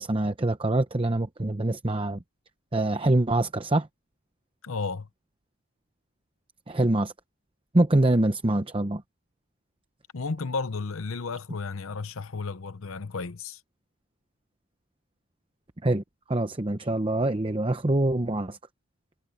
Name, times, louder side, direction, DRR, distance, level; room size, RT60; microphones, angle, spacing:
voice 1, 0.0-2.2 2.7-3.9 6.7-7.1 7.7-9.0 15.8-16.0 16.3-18.6, right 1 dB, 25° right, 0.8 m, -24 dB
voice 2, 4.6-5.1 10.1-13.6, left 4 dB, 80° left, 0.8 m, -33 dB
head